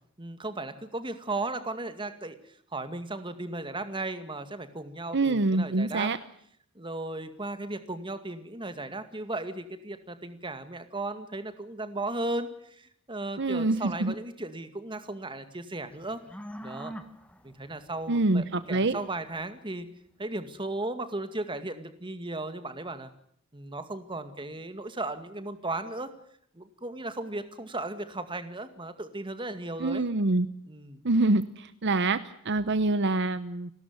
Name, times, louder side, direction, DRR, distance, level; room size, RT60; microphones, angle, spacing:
voice 1, 0.2-2.4 2.7-6.1 6.8-16.2 16.6-16.9 17.4-19.9 20.2-23.1 23.5-26.1 26.6-30.0 30.7-31.1, right 2 dB, 25° right, 10 dB, 2.1 m, -36 dB
voice 2, 5.1-6.2 13.4-14.1 18.1-19.0 29.8-30.5 31.0-32.2 32.4-33.7, right 2 dB, 55° right, 13 dB, 0.9 m, -25 dB
sound 1, 15.9-19.8, equal, 5° left, 1.8 m, -45 dB
29.5 x 13.0 x 9.7 m, 0.67 s
head